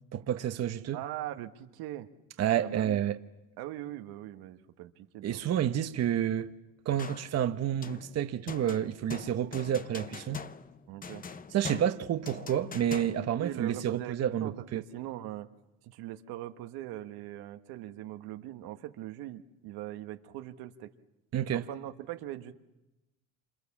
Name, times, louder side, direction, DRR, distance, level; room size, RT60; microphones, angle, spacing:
voice 1, 0.1-1.0 2.4-3.1 5.2-6.5 6.8-10.4 11.5-14.8 21.3-21.6, right 10 dB, 45° right, 1.1 m, -29 dB
voice 2, 0.9-2.1 2.6-3.0 3.6-5.7 10.9-11.2 13.4-15.5 15.8-20.9 21.5-22.5, right 14 dB, 80° right, 1.5 m, -41 dB
sound 1, 7.0-7.4 7.8-13.5, left 5 dB, 25° left, 0.9 m, -43 dB
27.5 x 27.5 x 7.3 m
cardioid pair, 120°, 37 cm